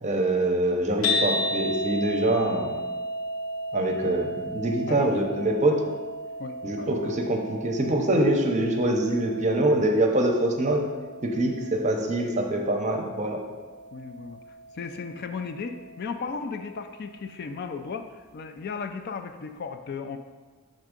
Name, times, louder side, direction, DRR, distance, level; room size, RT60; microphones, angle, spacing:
voice 1, 0.0-2.8 3.7-5.8 6.6-10.8 11.2-13.4, right 1 dB, 35° right, 3 dB, 0.6 m, -24 dB
sound 1, 1.0-17.3, equal, 70° left, 0.9 m, -35 dB
voice 2, 6.4-7.0 13.9-14.4 14.7-20.2, left 5 dB, 45° left, 7 dB, 0.3 m, -35 dB
6.5 x 3.5 x 5.0 m, 1.4 s
head